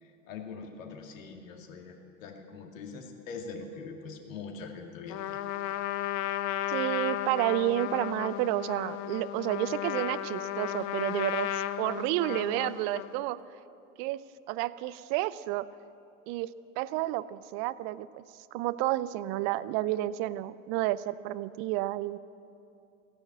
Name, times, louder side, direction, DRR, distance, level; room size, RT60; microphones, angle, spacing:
voice 1, 0.0-5.4, left 4 dB, 65° left, 3 dB, 2.2 m, -43 dB
Trumpet, 5.1-13.2, left 13 dB, 40° left, 0.7 m, -34 dB
voice 2, 6.7-13.4 14.0-14.2 14.5-15.7 16.3-18.2 18.5-22.2, right 15 dB, 35° right, 17 dB, 0.5 m, -31 dB
15.0 x 9.9 x 8.6 m, 2.6 s
hypercardioid pair, 95°, 43 cm